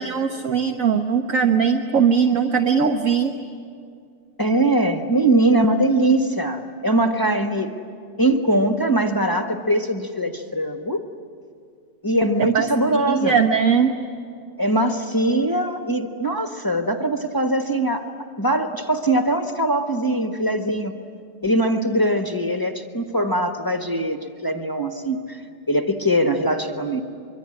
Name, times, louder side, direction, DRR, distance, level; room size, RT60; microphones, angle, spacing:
voice 1, 0.0-3.3 12.5-12.7 12.9-13.9, right 6 dB, 50° right, 5 dB, 1.4 m, -20 dB
voice 2, 4.4-7.7 8.2-11.0 12.0-13.4 14.6-18.1 18.4-20.9 21.4-27.0, right 1 dB, 15° left, 4 dB, 1.2 m, -21 dB
24.5 x 24.0 x 9.9 m, 2.3 s
omnidirectional pair, 1.9 m